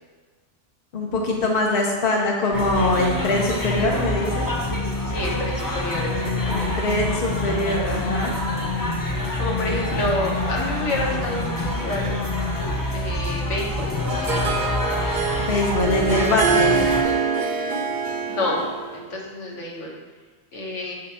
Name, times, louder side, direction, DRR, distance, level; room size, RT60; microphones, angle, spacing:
voice 1, 0.9-4.5 6.5-8.5 15.4-16.9, left 2 dB, 55° left, -1 dB, 0.9 m, -23 dB
sound 1, 2.5-17.0, left 2 dB, 30° left, 0.4 m, -26 dB
voice 2, 5.1-6.7 9.4-12.1 12.9-14.6 18.3-18.6 18.9-19.9 20.5-20.9, left 1 dB, 75° left, -3 dB, 1.4 m, -29 dB
Harp, 13.7-19.0, right 5 dB, 60° right, 0.5 m, -25 dB
6.5 x 2.9 x 5.5 m, 1.4 s
omnidirectional pair, 1.3 m